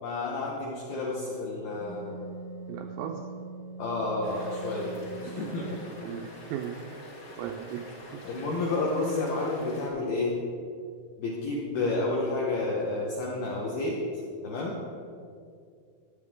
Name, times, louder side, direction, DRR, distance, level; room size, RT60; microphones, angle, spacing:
voice 1, 0.0-2.2 3.8-5.0 5.2-5.8 8.2-10.4 11.2-14.0 14.4-14.8, left 2 dB, 80° left, -3 dB, 2.2 m, -30 dB
Wind instrument woodwind instrument, 1.8-6.2, right 4 dB, 60° left, 2.7 m, -42 dB
voice 2, 2.7-3.3 5.2-5.6 6.0-7.0 7.4-8.2 11.8-12.0, right 8 dB, 90° right, 3 dB, 2.6 m, -38 dB
sound 1, 4.2-9.9, left 1 dB, 45° left, 1.4 m, -47 dB
14.5 x 9.1 x 3.6 m, 2.3 s
omnidirectional pair, 6.0 m